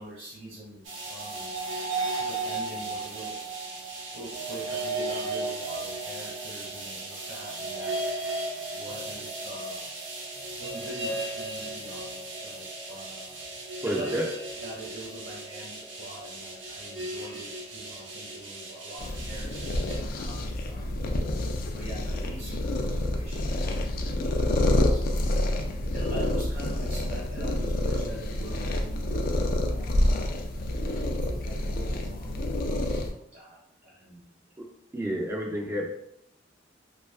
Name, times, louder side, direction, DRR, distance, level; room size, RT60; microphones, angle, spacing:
voice 1, 0.0-1.5 2.2-3.4 4.1-8.0 8.7-9.9 10.6-13.4 13.8-14.2 14.6-21.0 21.7-25.1 25.9-30.5 31.4-34.5, right 1 dB, 60° right, -6 dB, 1.0 m, -44 dB
sound 1, 0.8-20.0, right 2 dB, 80° right, 0.8 m, -35 dB
voice 2, 13.8-14.3 34.6-34.7 34.9-35.9, equal, 15° right, -1 dB, 0.5 m, -29 dB
sound 2, 19.0-33.1, left 1 dB, 50° left, 0.3 m, -28 dB
2.7 x 2.4 x 2.4 m, 0.78 s
head